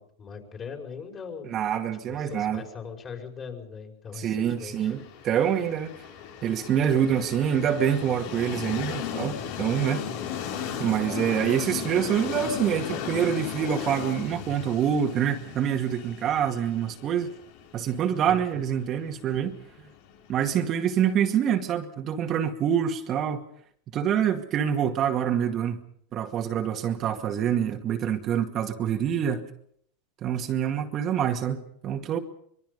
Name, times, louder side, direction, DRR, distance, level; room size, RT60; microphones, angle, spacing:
voice 1, 0.0-1.5 2.1-4.9 11.4-11.6 18.3-18.4, left 6 dB, 30° left, 3 dB, 5.4 m, -40 dB
voice 2, 1.4-2.6 4.2-5.9 6.4-10.0 10.8-17.3 17.7-19.6 20.3-23.4 23.9-25.8 26.1-29.5 30.2-32.2, right 9 dB, 35° right, 3 dB, 2.1 m, -26 dB
Train, 4.8-20.6, left 8 dB, 65° left, 4.6 m, -36 dB
24.0 x 22.5 x 5.4 m, 0.67 s
hypercardioid pair, 120°, 0 cm